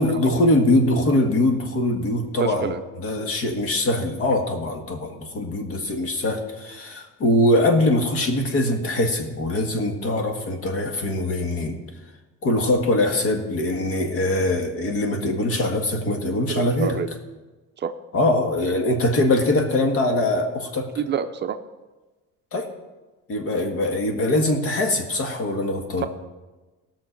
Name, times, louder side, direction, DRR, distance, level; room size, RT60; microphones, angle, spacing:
voice 1, 0.0-2.7 3.0-11.8 12.4-17.0 18.1-20.9 22.5-22.7 23.3-26.1, left 1 dB, 50° left, 4 dB, 1.8 m, -22 dB
voice 2, 2.4-2.8 16.5-17.1 17.8-17.9 21.0-21.6, right 7 dB, 35° right, 8 dB, 0.6 m, -27 dB
18.5 x 6.4 x 5.1 m, 1.2 s
cardioid pair, 140°, 29 cm